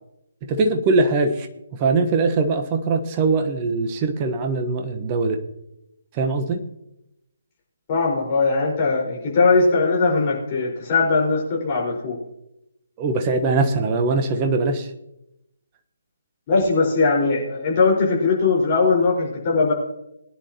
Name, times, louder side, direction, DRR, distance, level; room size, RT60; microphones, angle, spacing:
voice 1, 0.4-1.5 1.7-5.4 6.1-6.6 13.0-14.9, right 3 dB, 25° right, 5 dB, 1.2 m, -21 dB
voice 2, 7.9-12.2 16.5-19.7, left 4 dB, 30° left, -3 dB, 4.9 m, -20 dB
21.0 x 10.0 x 3.0 m, 0.87 s
figure-of-eight pair, 140°, 0 cm